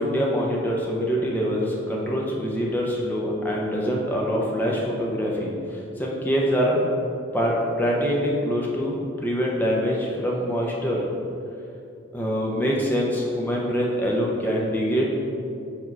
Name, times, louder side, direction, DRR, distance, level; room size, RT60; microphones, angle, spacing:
voice 1, 0.0-5.5 6.0-6.8 7.3-10.0 10.2-11.0 12.1-15.1, equal, 10° left, -3 dB, 0.7 m, -24 dB
4.7 x 4.5 x 4.7 m, 2.6 s
head